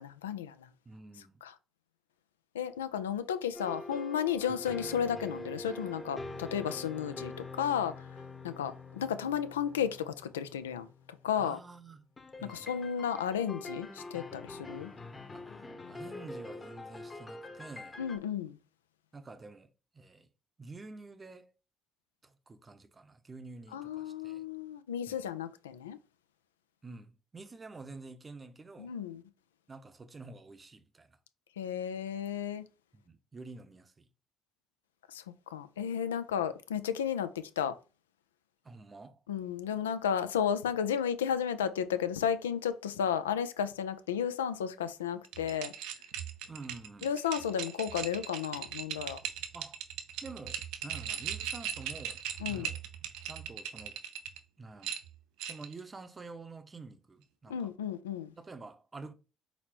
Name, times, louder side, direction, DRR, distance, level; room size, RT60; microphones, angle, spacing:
voice 1, 0.0-0.7 1.4-1.5 2.5-8.1 8.4-10.9 11.2-11.6 12.5-14.9 18.0-18.6 23.7-26.0 28.8-29.2 31.6-32.7 35.1-35.2 35.5-37.8 39.3-45.7 47.0-49.2 52.4-52.7 57.5-58.3, left 8 dB, 90° left, 0.3 m, -33 dB
voice 2, 0.9-1.4 4.5-4.6 11.4-12.1 12.4-12.9 15.3-18.0 19.1-20.3 20.6-21.5 22.2-24.4 25.1-25.3 26.8-28.9 29.7-31.2 32.9-34.1 36.3-36.4 38.6-39.2 46.5-47.1 49.5-49.8 50.2-52.8 53.2-54.0 54.6-54.9 55.4-57.7 58.4-59.1, right 3 dB, 30° right, 0.7 m, -49 dB
sound 1, 3.5-11.3 12.2-18.2, left 2 dB, 30° left, 0.9 m, -45 dB
sound 2, 45.2-54.4 54.8-55.8, right 9 dB, 75° right, 0.5 m, -39 dB
4.1 x 4.1 x 2.9 m
hypercardioid pair, 50°, 0 cm